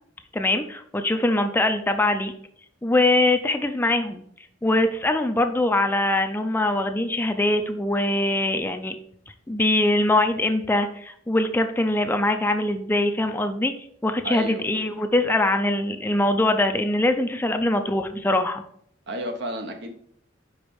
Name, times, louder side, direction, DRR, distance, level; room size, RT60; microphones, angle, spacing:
voice 1, 0.3-2.3 2.8-4.2 4.6-8.9 9.5-13.7 14.0-18.6, left 1 dB, 10° left, 7 dB, 0.4 m, -22 dB
voice 2, 14.2-14.7 19.1-20.0, right 1 dB, 65° right, 6 dB, 0.9 m, -31 dB
5.2 x 5.1 x 4.7 m, 0.66 s
head